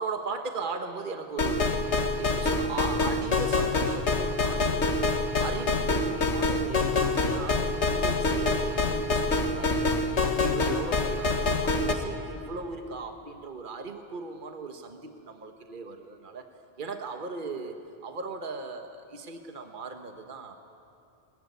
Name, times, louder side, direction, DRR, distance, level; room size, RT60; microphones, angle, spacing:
voice 1, 0.0-1.8 2.2-9.9 10.2-16.5 16.8-17.8 18.0-20.5, right 4 dB, 50° right, 5 dB, 1.4 m, -38 dB
sound 1, 1.4-11.9, left 3 dB, 75° left, 1.9 m, -26 dB
21.0 x 19.5 x 9.5 m, 2.7 s
omnidirectional pair, 1.2 m